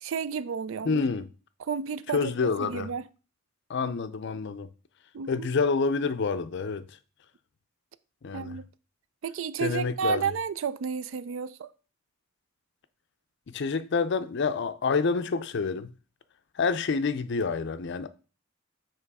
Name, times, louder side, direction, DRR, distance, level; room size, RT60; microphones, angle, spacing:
voice 1, 0.0-1.0 1.6-3.0 5.1-5.5 8.3-8.7 9.2-11.7, right 6 dB, 65° right, 0.4 m, -32 dB
voice 2, 0.8-1.3 2.1-2.9 3.7-4.7 5.3-7.0 8.2-8.6 9.6-10.3 13.5-15.9 16.5-18.1, left 4 dB, 55° left, 0.5 m, -28 dB
6.8 x 3.1 x 4.7 m
head